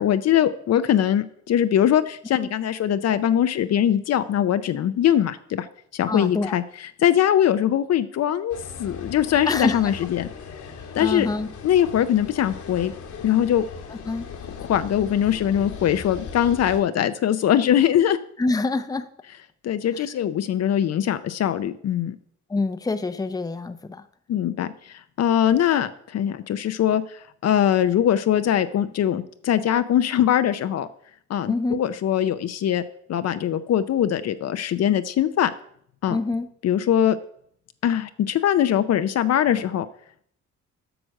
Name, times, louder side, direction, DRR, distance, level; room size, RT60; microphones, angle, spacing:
voice 1, 0.0-5.7 5.9-10.3 10.9-11.3 11.6-12.9 13.2-13.6 14.6-18.2 19.6-22.2 24.3-30.9 31.3-32.8 33.1-35.5 36.0-36.2 36.6-37.2 37.8-39.9, left 10 dB, 55° left, 12 dB, 0.6 m, -22 dB
voice 2, 6.1-6.6 9.5-9.9 10.8-11.5 14.1-14.3 18.4-19.1 19.9-20.1 22.5-24.0 31.4-31.8 36.1-36.5, left 3 dB, 10° left, 10 dB, 0.6 m, -26 dB
sound 1, 8.5-16.8, left 6 dB, 75° left, 1.7 m, -38 dB
7.9 x 6.1 x 6.4 m, 0.65 s
cardioid pair, 90°, 30 cm